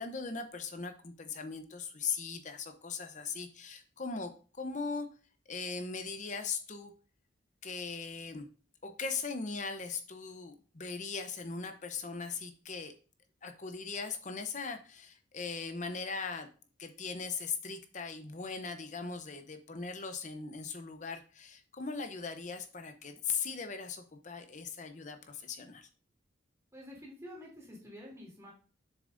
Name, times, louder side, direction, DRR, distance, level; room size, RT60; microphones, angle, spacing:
voice 1, 0.0-5.1 5.5-6.9 7.6-8.5 8.8-12.9 13.4-16.5 16.8-25.9, left 5 dB, 40° left, 7 dB, 0.8 m, -39 dB
voice 2, 26.7-28.5, equal, 15° right, -3 dB, 2.9 m, -48 dB
7.0 x 7.0 x 2.6 m, 0.38 s
head